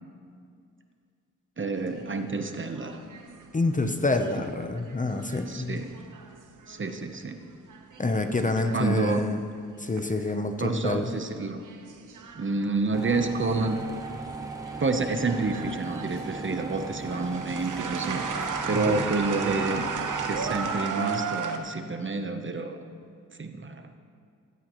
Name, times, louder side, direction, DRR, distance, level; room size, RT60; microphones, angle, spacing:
voice 1, 1.6-3.0 5.5-5.9 6.7-7.4 8.7-9.3 10.6-11.6 12.4-13.8 14.8-18.2 18.7-19.9 20.2-22.8 23.4-23.9, right 3 dB, 35° right, 6 dB, 0.9 m, -29 dB
sound 1, 1.8-7.1 7.5-10.3 10.6-11.1 11.6-14.3 14.6-21.6, right 5 dB, 65° right, 1.0 m, -36 dB
voice 2, 3.5-5.8 8.0-9.4 9.8-11.1 18.7-19.0, left 2 dB, 25° left, 6 dB, 0.8 m, -27 dB
sound 2, 12.9-20.7, right 3 dB, 10° right, 1.2 m, -38 dB
15.5 x 13.5 x 3.1 m, 2.2 s
cardioid pair, 80°, 33 cm